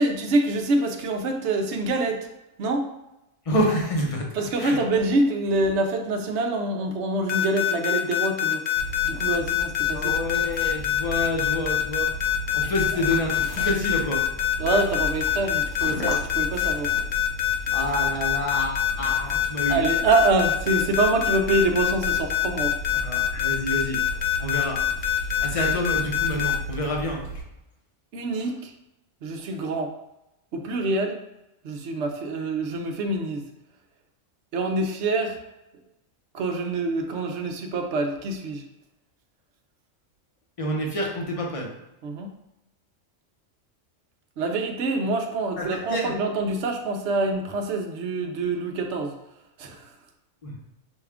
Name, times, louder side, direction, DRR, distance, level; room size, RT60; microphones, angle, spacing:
voice 1, 0.0-2.3 2.6-2.9 4.3-8.7 9.0-10.1 14.6-16.9 19.7-22.8 28.1-28.7 29.2-29.9 30.5-31.2 31.6-33.5 34.5-35.4 36.3-38.7 42.0-42.3 44.4-49.2 49.6-49.9, right 2 dB, 65° right, 4 dB, 0.9 m, -25 dB
voice 2, 3.5-4.3 4.6-4.8 9.9-12.1 12.5-14.2 17.7-19.8 22.9-27.2 40.6-41.7 45.6-46.1 50.4-50.5, equal, 30° left, 0 dB, 0.7 m, -28 dB
sound 1, 7.3-26.5, left 14 dB, 65° left, 0.8 m, -24 dB
sound 2, 8.7-27.4, right 2 dB, 85° left, 1.3 m, -36 dB
6.1 x 2.4 x 3.4 m, 0.90 s
omnidirectional pair, 1.3 m